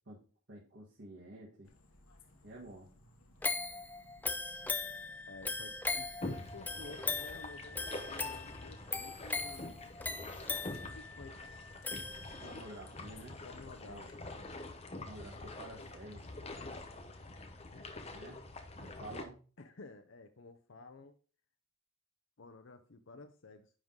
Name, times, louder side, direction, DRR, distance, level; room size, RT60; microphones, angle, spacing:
voice 1, 0.5-1.7 2.4-2.9 12.4-13.4 13.8-14.1 14.9-16.2 18.1-18.4 18.7-19.4, right 1 dB, 55° right, -5 dB, 1.7 m, -50 dB
sound 1, 1.6-14.3, left 2 dB, 80° left, 1.3 m, -62 dB
jack jill toy piano, 3.4-12.7 13.1-13.2, left 4 dB, 10° left, 0.3 m, -39 dB
voice 2, 5.3-10.0 10.8-11.7 13.4-14.1 17.7-17.9 19.6-21.1 22.4-23.7, left 3 dB, 65° left, 6 dB, 0.6 m, -53 dB
sound 2, 6.2-19.3, left 2 dB, 30° left, 0.8 m, -46 dB
9.9 x 3.7 x 3.9 m, 0.38 s
head